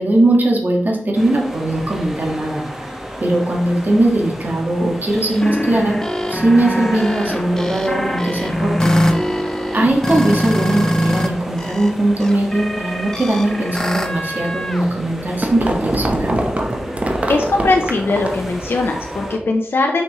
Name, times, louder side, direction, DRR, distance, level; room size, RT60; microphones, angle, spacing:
voice 1, 0.0-2.6 3.2-6.0 6.3-8.9 9.7-16.4, right 1 dB, 50° right, 0 dB, 1.5 m, -19 dB
sound 1, 1.1-19.4, equal, 10° right, 1.2 m, -32 dB
sound 2, 5.1-11.3 11.6-14.9, equal, 15° left, 0.8 m, -22 dB
sound 3, 15.2-18.5, right 1 dB, 35° right, 0.9 m, -23 dB
voice 2, 17.3-20.0, left 3 dB, 80° left, 2 dB, 0.6 m, -19 dB
6.2 x 5.1 x 3.0 m, 0.72 s
wide cardioid pair, 65°, 4 cm